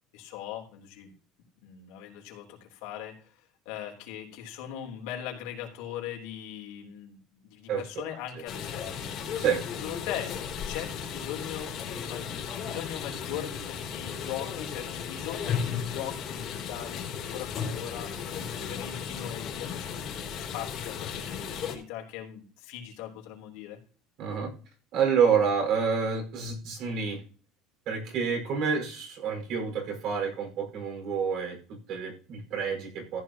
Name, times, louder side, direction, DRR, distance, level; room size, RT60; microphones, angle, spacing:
voice 1, 0.1-1.1 1.6-3.3 3.6-9.4 9.8-19.9 20.5-23.8 28.5-28.7, left 10 dB, 80° left, 1 dB, 3.3 m, -40 dB
sound 1, 8.5-21.8, left 7 dB, 45° left, 3.0 m, -35 dB
voice 2, 24.2-24.5 24.9-27.2 27.9-33.2, right 6 dB, 55° right, 3 dB, 5.0 m, -28 dB
14.5 x 9.6 x 2.9 m, 0.39 s
cardioid pair, 155°, 0 cm